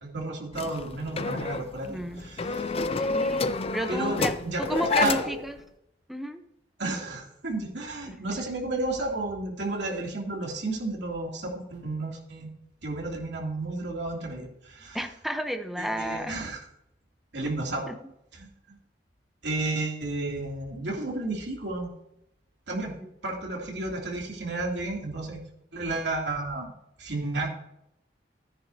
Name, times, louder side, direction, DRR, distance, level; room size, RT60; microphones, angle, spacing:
voice 1, 0.0-2.7 3.9-5.4 6.8-12.5 12.8-15.0 15.8-16.6 17.3-17.9 18.3-18.8 19.4-21.9 22.7-22.9 23.2-25.4 25.7-26.7 27.0-27.5, right 2 dB, 75° right, -1 dB, 2.9 m, -32 dB
sound 1, 0.5-5.5, left 3 dB, 35° left, 0.4 m, -29 dB
voice 2, 1.8-2.2 3.0-4.3 4.6-5.5 6.1-6.4 8.1-8.2 14.9-16.4 17.9-18.0, equal, ahead, 6 dB, 0.8 m, -32 dB
14.0 x 9.7 x 2.8 m, 0.80 s
head